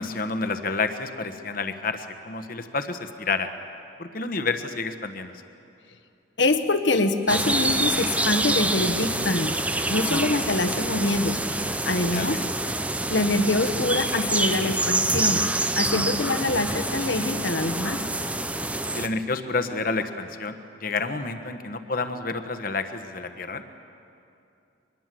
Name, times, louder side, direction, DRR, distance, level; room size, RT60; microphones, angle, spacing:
voice 1, 0.0-3.5 4.0-5.3 12.1-12.4 16.2-16.3 18.9-20.6 20.8-23.6, left 3 dB, 45° left, 8 dB, 1.2 m, -29 dB
voice 2, 6.4-9.5 9.9-11.4 11.8-12.4 13.1-18.0, left 2 dB, 70° left, 8 dB, 1.3 m, -25 dB
sound 1, 7.3-19.1, right 2 dB, 5° right, 0.6 m, -26 dB
23.5 x 21.0 x 7.7 m, 2.7 s
head